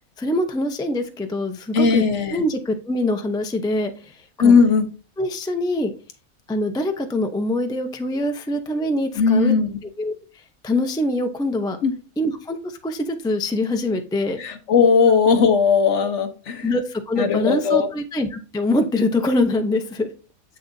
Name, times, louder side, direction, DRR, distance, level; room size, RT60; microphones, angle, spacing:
voice 1, 0.2-2.0 2.3-4.5 5.2-5.9 6.5-9.5 9.8-11.8 12.2-14.4 16.6-20.1, left 1 dB, 5° left, 6 dB, 0.3 m, -24 dB
voice 2, 1.7-2.4 4.4-4.9 9.2-9.8 11.8-11.9 14.4-16.7 17.2-17.9, left 5 dB, 60° left, 7 dB, 1.2 m, -17 dB
7.5 x 6.6 x 2.7 m, 0.35 s
omnidirectional pair, 1.5 m